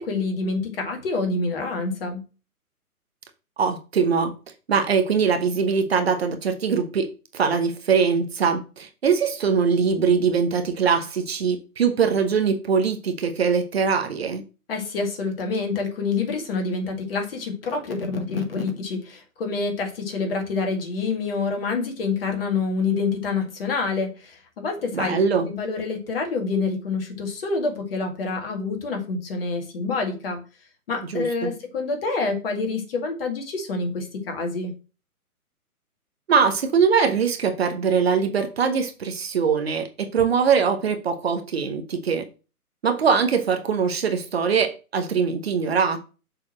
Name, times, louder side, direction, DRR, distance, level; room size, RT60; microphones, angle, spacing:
voice 1, 0.0-2.2 14.7-30.4 30.9-34.7, left 4 dB, 40° left, 2.3 m, -27 dB
voice 2, 3.6-4.3 4.7-14.4 24.9-25.5 31.1-31.5 36.3-42.3 42.8-46.0, right 6 dB, 45° right, 1.0 m, -22 dB
6.6 x 4.1 x 6.3 m
figure-of-eight pair, 130°, 45 cm